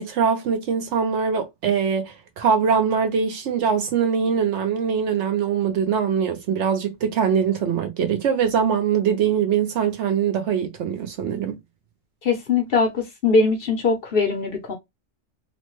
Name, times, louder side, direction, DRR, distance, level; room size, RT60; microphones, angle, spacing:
voice 1, 0.0-11.6, right 7 dB, 65° right, 0.9 m, -22 dB
voice 2, 12.2-14.7, left 4 dB, 55° left, 0.8 m, -21 dB
3.1 x 2.1 x 2.9 m
omnidirectional pair, 1.4 m